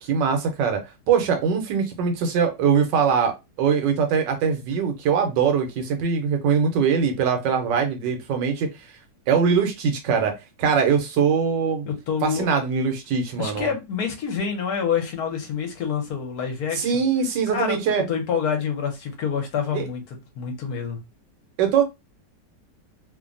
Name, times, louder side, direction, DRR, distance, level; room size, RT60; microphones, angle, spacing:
voice 1, 0.0-8.7 9.3-11.9 12.2-13.7 16.7-18.0 19.7-19.9 21.6-21.8, right 6 dB, 80° right, 1.3 m, -22 dB
voice 2, 11.9-12.5 13.4-17.0 17.5-21.0, left 7 dB, 65° left, 1.2 m, -27 dB
3.1 x 2.2 x 2.5 m
omnidirectional pair, 1.9 m